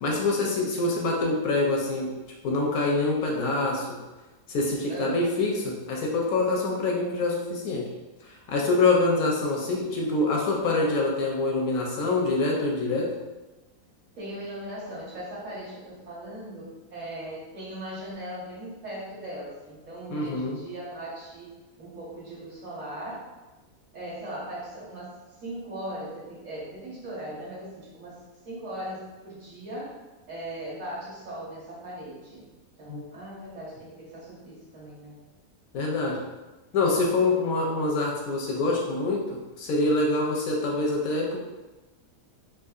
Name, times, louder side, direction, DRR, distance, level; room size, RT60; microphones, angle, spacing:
voice 1, 0.0-2.1 2.4-3.9 4.5-7.9 8.2-13.1 20.1-20.6 32.9-33.0 35.7-36.2 36.7-41.4, left 2 dB, 70° left, -1 dB, 0.9 m, -25 dB
voice 2, 14.1-21.5 21.8-23.3 23.9-25.1 25.4-28.1 28.4-29.9 30.3-32.4 32.8-35.1, right 1 dB, 55° right, -7 dB, 1.5 m, -39 dB
3.6 x 2.7 x 2.4 m, 1.1 s
omnidirectional pair, 1.7 m